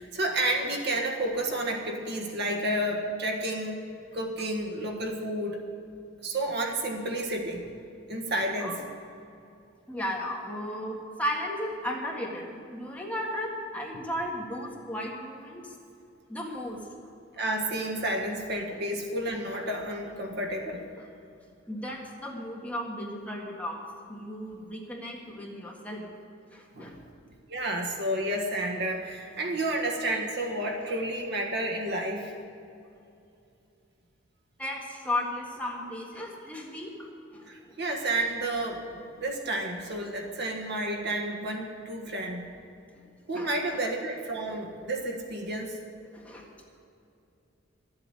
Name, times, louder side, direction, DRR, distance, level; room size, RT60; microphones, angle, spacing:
voice 1, 0.0-3.8 4.1-5.6 6.2-7.6 8.1-8.8 17.4-20.8 26.7-27.0 27.5-32.3 37.5-42.4 43.3-45.8, right 1 dB, 60° right, 2 dB, 1.6 m, -31 dB
voice 2, 9.9-15.7 16.3-16.8 18.7-18.8 21.0-21.1 21.7-23.8 24.1-26.0 26.5-27.0 34.6-37.8 42.9-43.0 43.3-43.5 46.1-46.5, left 1 dB, 10° left, -2 dB, 1.7 m, -35 dB
13.0 x 7.9 x 9.0 m, 2.6 s
head